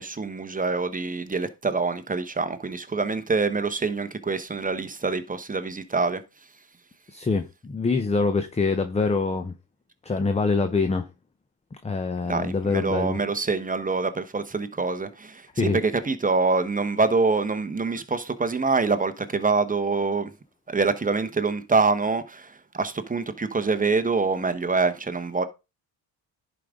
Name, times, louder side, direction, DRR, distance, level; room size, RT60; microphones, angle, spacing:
voice 1, 0.0-6.2 12.2-20.3 20.7-25.4, right 4 dB, 20° right, 1.0 m, -25 dB
voice 2, 7.1-9.5 10.0-11.1 11.8-13.2 15.6-15.8, left 4 dB, 15° left, 0.7 m, -25 dB
11.0 x 5.1 x 3.7 m
cardioid pair, 90°, 44 cm